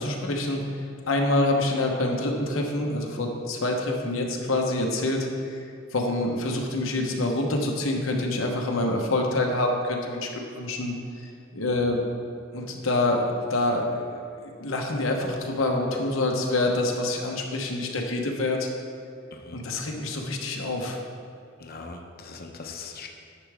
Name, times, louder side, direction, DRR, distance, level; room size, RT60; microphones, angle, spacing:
voice 1, 0.0-5.6 5.9-12.0 12.5-18.7 19.5-21.0, left 2 dB, 90° left, 1 dB, 1.0 m, -26 dB
voice 2, 21.6-23.1, left 4 dB, 50° left, 3 dB, 0.8 m, -40 dB
10.0 x 6.0 x 3.5 m, 2.3 s
head